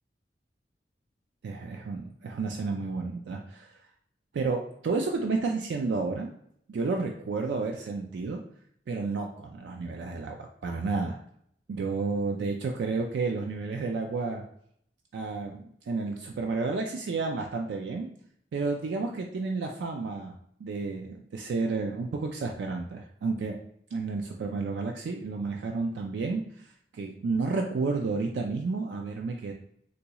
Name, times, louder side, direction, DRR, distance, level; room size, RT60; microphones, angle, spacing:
voice 1, 1.4-3.8 4.3-6.3 6.7-8.4 8.9-11.2 11.7-14.4 15.1-18.1 18.5-23.6 23.9-29.5, right 4 dB, 70° right, 2 dB, 0.3 m, -31 dB
3.9 x 2.3 x 2.8 m, 0.69 s
head